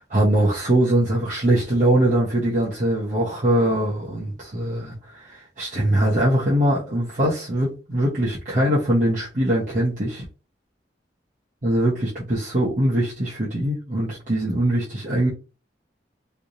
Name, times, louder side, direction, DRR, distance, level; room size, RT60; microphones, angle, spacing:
voice 1, 0.1-10.2 11.6-15.3, right 1 dB, 45° right, 1.0 m, -22 dB
3.4 x 2.9 x 2.6 m
head